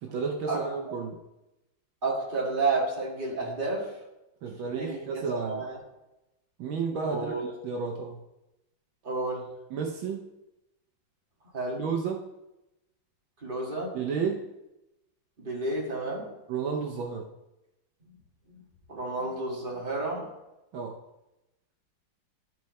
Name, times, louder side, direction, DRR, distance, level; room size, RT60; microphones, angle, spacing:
voice 1, 0.0-1.2 4.4-5.6 6.6-8.2 9.7-10.3 11.8-12.3 13.9-14.5 16.5-17.3 20.7-20.9, right 5 dB, 75° right, 1 dB, 1.5 m, -32 dB
voice 2, 2.0-3.9 4.7-5.8 7.1-7.5 9.0-9.5 11.5-11.8 13.4-14.0 15.4-16.3 18.1-18.2 18.9-20.3, right 3 dB, 25° right, -4 dB, 2.1 m, -31 dB
13.5 x 4.7 x 3.1 m, 0.94 s
omnidirectional pair, 2.2 m